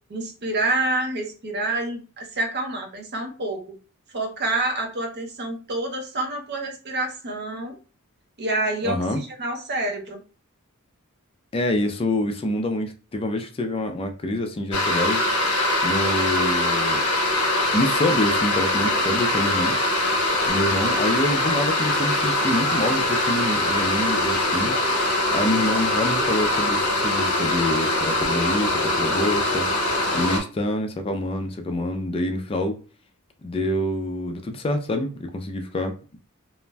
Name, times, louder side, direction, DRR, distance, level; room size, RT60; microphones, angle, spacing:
voice 1, 0.1-3.8 4.1-7.8 8.4-10.2, right 2 dB, 50° right, 0.6 m, -27 dB
voice 2, 8.8-9.2 11.5-15.3 15.8-17.0 17.7-19.8 20.5-24.7 25.3-29.8 30.1-32.8 33.4-36.2, left 1 dB, 25° left, 0.3 m, -26 dB
sound 1, 14.7-30.4, left 1 dB, 70° left, 0.8 m, -22 dB
2.5 x 2.1 x 3.2 m
head